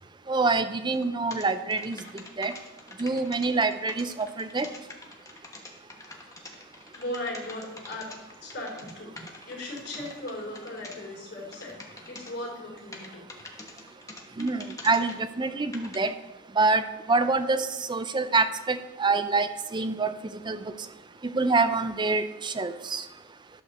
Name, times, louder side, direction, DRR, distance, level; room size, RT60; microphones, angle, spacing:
voice 1, 0.3-2.0 2.4-2.5 3.0-4.7 14.4-16.1 16.6-20.1 20.5-20.6 21.2-23.0, right 3 dB, 20° right, 10 dB, 0.5 m, -26 dB
sound 1, 0.9-1.1 1.3-11.0 11.5-12.3 12.9-15.2 15.7-16.0, left 3 dB, 15° left, 1.1 m, -45 dB
voice 2, 7.0-8.1 8.4-9.1 9.5-11.8 12.1-13.2, left 1 dB, 50° left, -3 dB, 3.5 m, -37 dB
11.5 x 4.9 x 6.6 m, 1.1 s
head